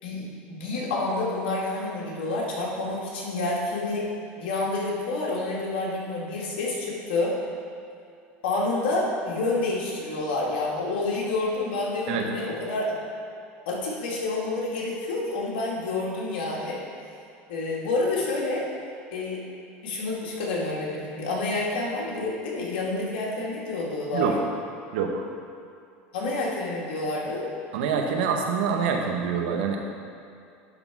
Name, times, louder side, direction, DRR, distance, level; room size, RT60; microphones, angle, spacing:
voice 1, 0.0-4.1 4.4-7.4 8.4-13.0 13.7-16.8 17.5-18.6 19.1-19.4 19.8-24.3 26.1-27.5, left 2 dB, 80° left, -4 dB, 2.0 m, -28 dB
voice 2, 24.9-25.2 27.7-29.8, right 6 dB, 80° right, 3 dB, 1.0 m, -25 dB
11.0 x 4.0 x 4.7 m, 2.5 s
supercardioid pair, 110°, 5 cm